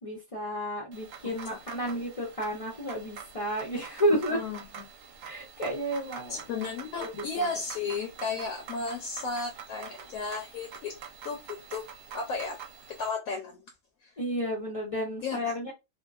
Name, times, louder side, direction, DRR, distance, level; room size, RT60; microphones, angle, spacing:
voice 1, 0.0-4.4 5.2-6.4 7.0-7.5 14.2-15.7, equal, 50° left, 0.4 m, -31 dB
sound 1, 0.9-13.1, right 7 dB, 70° right, 0.9 m, -46 dB
voice 2, 4.1-4.6 6.3-11.0 11.2-12.6 12.9-13.6 14.0-14.1 15.2-15.5, left 4 dB, 75° left, 1.0 m, -34 dB
2.8 x 2.2 x 2.3 m
omnidirectional pair, 1.6 m